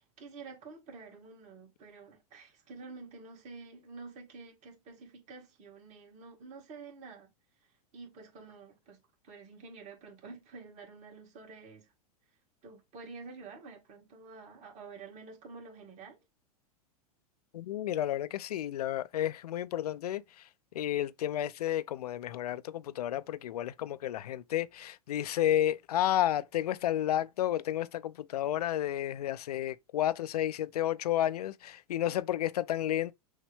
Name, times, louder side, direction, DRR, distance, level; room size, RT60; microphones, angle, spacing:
voice 1, 0.0-7.3 7.9-9.0 9.2-11.9 12.6-16.2, right 4 dB, 35° right, 1.8 m, -49 dB
voice 2, 17.5-20.5 20.7-33.1, left 12 dB, 80° left, 0.5 m, -31 dB
6.3 x 2.2 x 3.4 m
hypercardioid pair, 105°, 20 cm